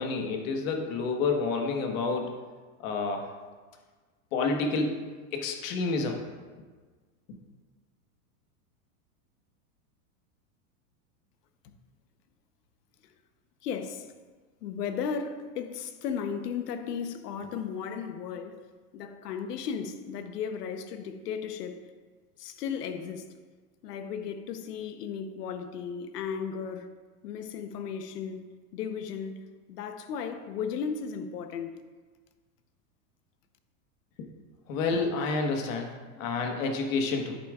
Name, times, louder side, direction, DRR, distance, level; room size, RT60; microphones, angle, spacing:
voice 1, 0.0-2.3 2.8-3.3 4.3-5.0 5.3-6.2 34.2-34.3 34.7-35.9 36.2-37.4, left 4 dB, 60° left, 1.4 m, -29 dB
voice 2, 13.6-14.1 14.6-18.7 18.9-21.8 22.4-23.3 23.8-26.9 27.2-28.4 28.7-29.4 29.7-31.7, left 7 dB, 85° left, 1.0 m, -35 dB
10.0 x 8.5 x 2.4 m
supercardioid pair, 160°, 46 cm